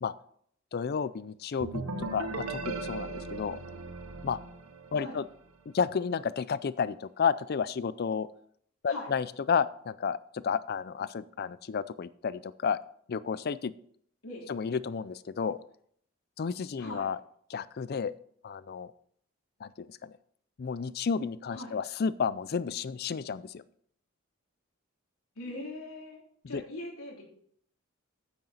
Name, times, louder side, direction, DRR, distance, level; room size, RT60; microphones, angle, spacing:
voice 1, 0.7-3.6 4.2-4.4 4.9-5.3 5.7-8.3 8.8-12.8 13.1-13.7 14.5-15.6 16.4-17.2 17.5-18.1 18.4-18.9 19.6-20.2 20.6-23.6 26.5-26.6, left 6 dB, 50° left, 17 dB, 0.4 m, -31 dB
sound 1, 1.6-5.3, right 3 dB, 90° right, 0.9 m, -38 dB
voice 2, 16.8-17.1 21.5-21.7 25.3-27.2, left 1 dB, 90° left, -1 dB, 3.1 m, -41 dB
8.9 x 8.7 x 4.1 m, 0.64 s
head